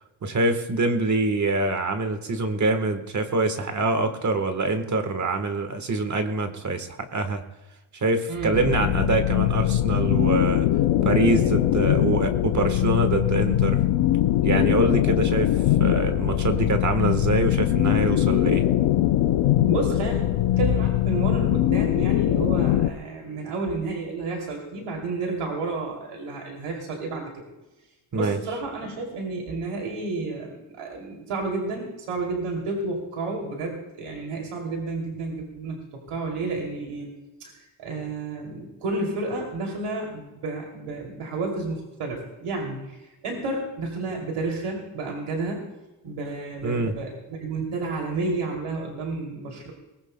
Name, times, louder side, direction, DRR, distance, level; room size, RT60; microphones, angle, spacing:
voice 1, 0.2-7.4 8.0-10.7 11.0-13.8 14.4-15.5 15.8-18.7 28.1-28.4 46.6-46.9, right 3 dB, 35° right, 8 dB, 1.3 m, -25 dB
sound 1, 8.5-22.9, left 13 dB, 85° left, 0.7 m, -22 dB
voice 2, 19.7-20.2 20.5-27.3 28.1-37.1 37.8-42.9 43.2-45.6 46.0-49.7, right 3 dB, 85° right, 1 dB, 2.9 m, -31 dB
22.0 x 19.0 x 2.2 m, 1.1 s
wide cardioid pair, 170°, 50 cm